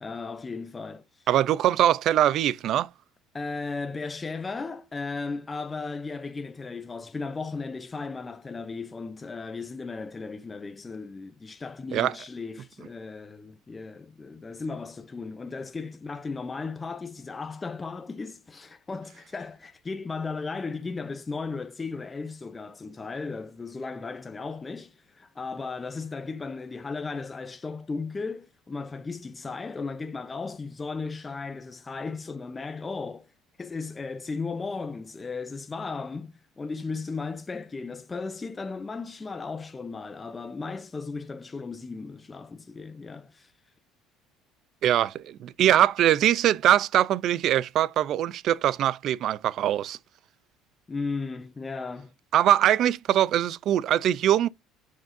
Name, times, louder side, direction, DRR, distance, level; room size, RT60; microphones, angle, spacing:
voice 1, 0.0-1.3 3.3-33.3 33.6-43.5 50.9-52.1, left 4 dB, 20° left, 0.6 m, -36 dB
voice 2, 1.3-2.9 11.9-12.1 44.8-50.0 52.3-54.5, right 11 dB, 55° right, 0.5 m, -22 dB
10.5 x 6.5 x 2.6 m
cardioid pair, 130°, 0 cm